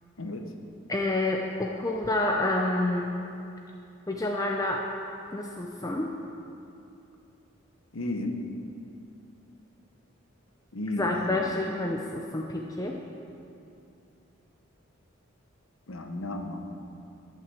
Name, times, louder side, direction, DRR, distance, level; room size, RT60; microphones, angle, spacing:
voice 1, 0.2-0.5 7.9-8.4 10.7-11.4 15.9-16.6, left 2 dB, 75° left, 4 dB, 1.0 m, -33 dB
voice 2, 0.9-3.2 4.1-4.9 5.3-6.1 11.0-13.0, left 2 dB, 15° left, 1 dB, 0.5 m, -28 dB
11.0 x 5.9 x 7.6 m, 2.7 s
head